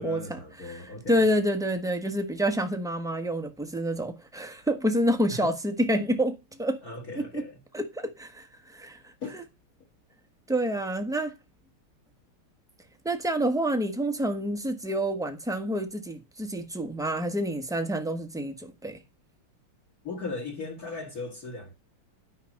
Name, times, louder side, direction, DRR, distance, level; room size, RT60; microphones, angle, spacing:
voice 1, 0.0-1.3 5.3-5.5 6.8-7.6 9.2-9.4 20.0-21.7, left 3 dB, 45° left, 2.0 m, -38 dB
voice 2, 1.1-6.8 7.3-7.4 7.7-8.5 8.7-9.0 9.3-9.4 10.5-11.3 13.0-19.0, equal, ahead, 0.8 m, -28 dB
10.5 x 5.8 x 5.3 m
omnidirectional pair, 2.4 m